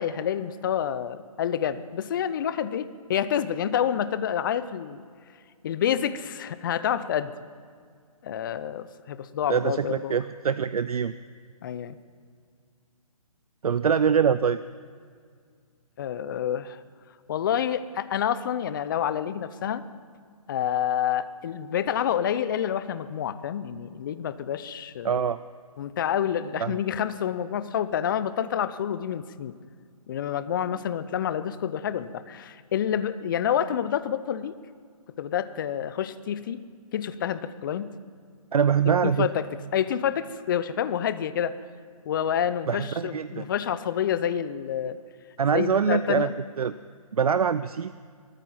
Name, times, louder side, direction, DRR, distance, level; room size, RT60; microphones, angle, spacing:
voice 1, 0.0-5.0 5.6-7.3 8.2-10.1 11.6-12.0 16.0-16.8 17.3-19.8 20.5-25.2 25.8-29.5 30.1-34.5 35.2-36.6 36.9-37.9 38.9-39.5 39.7-41.5 42.1-45.0 45.5-46.3, left 9 dB, 35° left, 14 dB, 0.6 m, -28 dB
voice 2, 9.5-11.1 13.6-14.6 25.0-25.4 26.6-26.8 38.5-39.3 42.7-43.5 45.4-46.3 46.6-46.7 47.1-47.9, right 7 dB, 75° right, 14 dB, 0.5 m, -24 dB
24.0 x 9.1 x 5.7 m, 2.1 s
hypercardioid pair, 145°, 19 cm